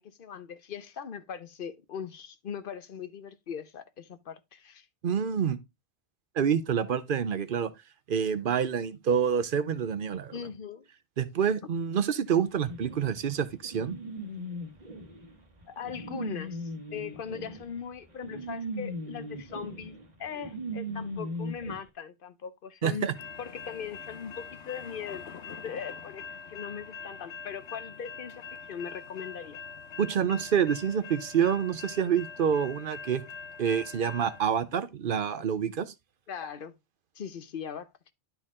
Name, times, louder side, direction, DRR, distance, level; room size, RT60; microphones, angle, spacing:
voice 1, 0.0-4.9 10.3-10.9 15.7-23.1 23.4-29.6 36.3-36.7 37.1-37.9, left 7 dB, 60° left, 0.9 m, -40 dB
voice 2, 5.0-5.6 6.3-7.7 8.1-10.4 11.2-14.0 22.8-23.1 30.0-33.2 33.6-35.9, right 7 dB, 55° right, 0.9 m, -27 dB
sound 1, 12.7-21.8, equal, 40° right, 1.4 m, -39 dB
sound 2, 23.1-34.4, left 5 dB, 85° left, 1.0 m, -44 dB
11.5 x 4.4 x 3.7 m
omnidirectional pair, 1.1 m